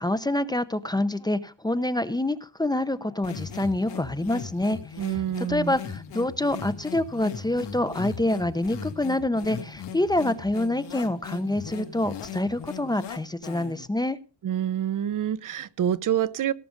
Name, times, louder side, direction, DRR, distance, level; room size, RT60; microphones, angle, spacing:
voice 1, 0.0-14.2, left 1 dB, 10° left, 13 dB, 0.7 m, -27 dB
sound 1, 3.2-13.9, left 7 dB, 75° left, 2.5 m, -38 dB
voice 2, 5.0-5.8 14.4-16.5, right 10 dB, 50° right, 17 dB, 0.8 m, -27 dB
18.0 x 6.8 x 5.2 m, 0.35 s
cardioid pair, 135°, 42 cm